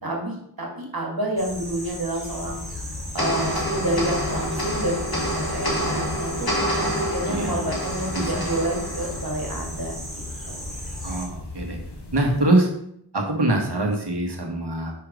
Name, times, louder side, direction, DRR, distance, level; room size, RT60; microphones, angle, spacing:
voice 1, 0.0-2.6 3.1-6.5 6.9-9.9 10.5-10.7, right 1 dB, 65° right, 0 dB, 2.0 m, -29 dB
sound 1, 1.4-11.3, equal, ahead, 2.3 m, -37 dB
sound 2, 2.4-12.4, left 2 dB, 85° left, 1.2 m, -37 dB
sound 3, 3.2-9.8, equal, 65° left, 1.9 m, -28 dB
voice 2, 7.3-7.6 8.1-8.5 11.0-11.8 12.1-12.7 13.1-14.9, right 2 dB, 85° right, 2 dB, 1.4 m, -23 dB
5.6 x 4.7 x 5.1 m, 0.71 s
wide cardioid pair, 45°, 39 cm